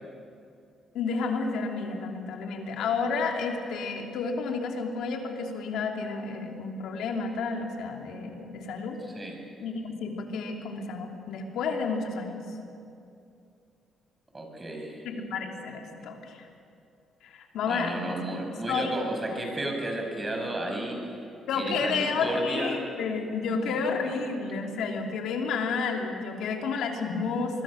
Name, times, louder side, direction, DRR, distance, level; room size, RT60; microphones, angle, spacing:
voice 1, 0.9-9.0 9.6-12.4 15.1-16.5 17.2-18.1 18.7-18.9 21.5-27.6, left 4 dB, 80° left, 2 dB, 3.0 m, -31 dB
voice 2, 14.3-15.0 17.7-21.0 21.5-22.8 23.5-24.2, right 1 dB, 25° right, 2 dB, 6.3 m, -33 dB
25.0 x 21.5 x 6.5 m, 2.6 s
cardioid pair, 90°, 0 cm